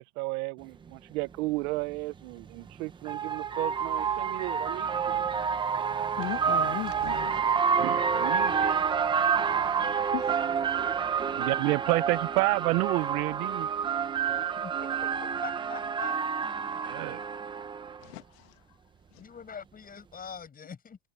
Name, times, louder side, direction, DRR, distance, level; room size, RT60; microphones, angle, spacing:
voice 1, 0.0-5.2 7.8-8.8 11.4-13.7 16.7-17.2, right 23 dB, 65° right, 0.7 m, -31 dB
sound 1, 0.9-1.0 2.4-18.0, right 6 dB, 10° right, 0.5 m, -28 dB
voice 2, 6.2-7.8 9.6-11.0 11.2-11.5 18.0-18.6 19.1-19.2, left 22 dB, 75° left, 1.6 m, -40 dB
voice 3, 14.6-14.9 15.2-16.2 19.2-21.0, left 6 dB, 20° left, 5.6 m, -43 dB
supercardioid pair, 155°, 47 cm